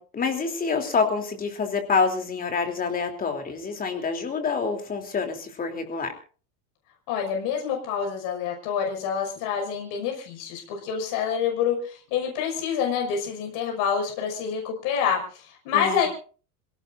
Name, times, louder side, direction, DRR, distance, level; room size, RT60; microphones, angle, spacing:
voice 1, 0.0-6.1 15.7-16.1, left 5 dB, 20° left, 5 dB, 3.3 m, -27 dB
voice 2, 7.1-16.1, left 7 dB, 50° left, 2 dB, 6.3 m, -27 dB
27.0 x 18.0 x 2.7 m, 0.40 s
supercardioid pair, 150°, 44 cm